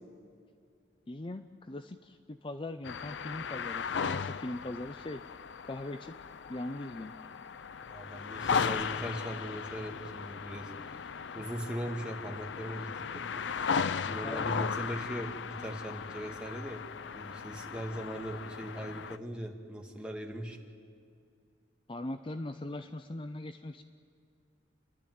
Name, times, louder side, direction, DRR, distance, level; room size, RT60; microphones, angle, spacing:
voice 1, 1.1-5.2 5.6-6.2 6.5-7.2 14.0-14.7 21.9-23.8, left 1 dB, 30° left, 9 dB, 0.5 m, -40 dB
sound 1, 2.8-19.2, left 6 dB, 80° left, 0.5 m, -37 dB
voice 2, 7.8-13.3 13.6-13.8 14.1-16.8 17.1-20.6, equal, 5° right, 1 dB, 1.8 m, -40 dB
30.0 x 12.0 x 9.4 m, 2.3 s
head